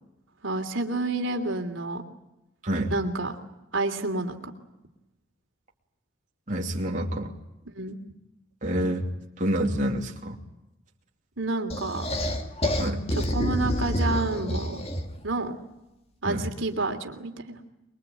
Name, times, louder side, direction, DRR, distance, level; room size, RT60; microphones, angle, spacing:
voice 1, 0.4-2.0 2.9-3.4 3.7-4.5 7.7-8.0 11.4-12.1 13.1-14.8 15.2-15.5 16.2-17.6, right 2 dB, 70° right, 5 dB, 3.0 m, -29 dB
voice 2, 6.5-7.3 8.6-9.1 9.4-10.4 12.8-13.0 16.2-16.5, right 1 dB, 40° right, -1 dB, 2.8 m, -27 dB
sound 1, 11.7-15.2, left 1 dB, 30° left, 2.4 m, -28 dB
24.5 x 23.0 x 9.0 m, 0.93 s
head